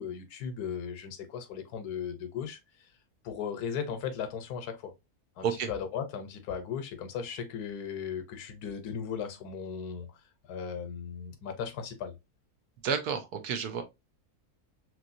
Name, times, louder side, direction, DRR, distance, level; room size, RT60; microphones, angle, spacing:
voice 1, 0.0-2.9 3.2-4.9 5.4-10.1 10.4-12.1, left 7 dB, 85° left, 1.2 m, -37 dB
voice 2, 12.8-13.8, right 7 dB, 90° right, 1.3 m, -30 dB
3.0 x 3.0 x 2.5 m
omnidirectional pair, 1.6 m